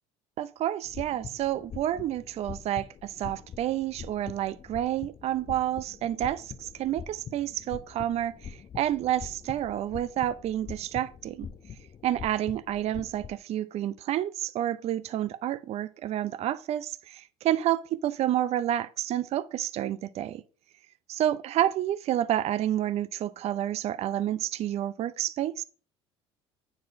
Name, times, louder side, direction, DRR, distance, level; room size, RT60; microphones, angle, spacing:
voice 1, 0.4-11.5 12.0-20.4 21.1-25.6, right 12 dB, 45° right, 0.6 m, -29 dB
sound 1, 0.8-13.4, left 7 dB, 35° left, 0.8 m, -44 dB
9.4 x 4.5 x 5.1 m
hypercardioid pair, 70°, 15 cm